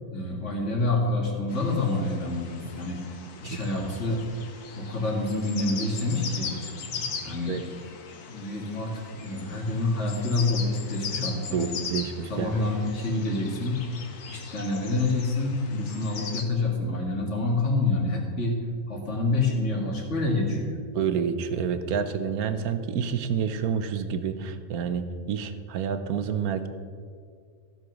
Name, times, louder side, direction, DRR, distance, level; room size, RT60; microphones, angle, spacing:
voice 1, 0.1-3.0 3.4-4.2 4.8-6.6 7.0-7.6 8.3-11.7 12.3-13.8 14.3-20.8, left 2 dB, 50° left, 0 dB, 2.3 m, -27 dB
sound 1, 1.5-16.4, left 5 dB, 80° left, 1.6 m, -39 dB
voice 2, 11.5-12.5 20.9-26.7, right 7 dB, 75° right, 10 dB, 1.3 m, -28 dB
14.5 x 6.1 x 6.1 m, 2.1 s
omnidirectional pair, 1.6 m